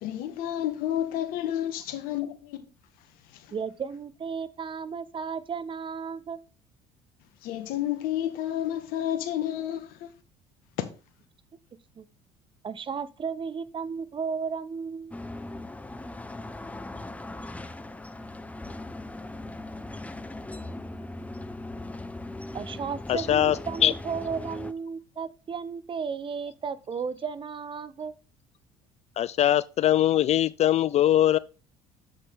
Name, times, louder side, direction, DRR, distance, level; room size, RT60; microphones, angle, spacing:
voice 1, 0.0-2.6 7.4-10.1, left 11 dB, 70° left, 1.3 m, -30 dB
voice 2, 3.5-6.4 12.0-12.1 12.6-15.2 22.5-28.1, right 6 dB, 35° right, 0.8 m, -34 dB
sound 1, 15.1-24.7, left 2 dB, 10° left, 0.7 m, -39 dB
voice 3, 23.1-23.6 23.8-23.9 29.2-31.4, left 12 dB, 45° left, 0.4 m, -21 dB
7.6 x 6.3 x 3.5 m
hypercardioid pair, 70°, 15 cm